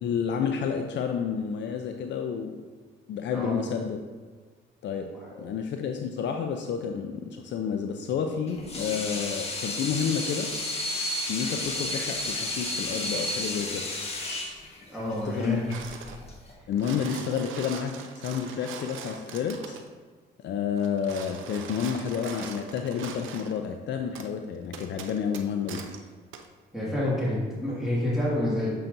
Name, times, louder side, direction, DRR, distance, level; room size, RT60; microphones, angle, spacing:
voice 1, 0.0-2.6 3.1-4.0 4.8-5.1 5.4-10.5 11.3-13.8 15.2-15.6 16.7-19.8 20.4-25.8, left 7 dB, 65° left, 5 dB, 0.5 m, -30 dB
voice 2, 3.3-3.6 5.1-5.5 14.9-15.7 26.7-28.7, left 1 dB, ahead, -8 dB, 1.9 m, -28 dB
Water tap faucet / Sink (filling or washing), 8.5-16.5, left 1 dB, 30° left, 1.4 m, -32 dB
sound 1, 15.7-16.2 16.6-19.9 20.8-23.6 24.2-24.3 24.7-26.0 26.3-26.5, right 6 dB, 80° right, 0.6 m, -42 dB
7.3 x 5.6 x 2.6 m, 1.5 s
cardioid pair, 90°, 20 cm